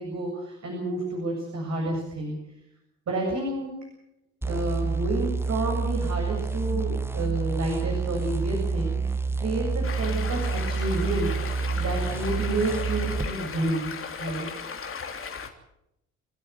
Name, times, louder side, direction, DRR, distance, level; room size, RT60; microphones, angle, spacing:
voice 1, 0.0-2.4 3.1-3.7 4.5-11.3 11.8-13.9 14.2-14.5, right 2 dB, 50° right, 1 dB, 7.6 m, -30 dB
sound 1, 4.4-13.3, right 4 dB, 5° right, 1.6 m, -28 dB
Stream, 9.8-15.5, left 5 dB, 35° left, 3.3 m, -36 dB
27.0 x 14.0 x 8.2 m, 0.83 s
figure-of-eight pair, 45°, 35 cm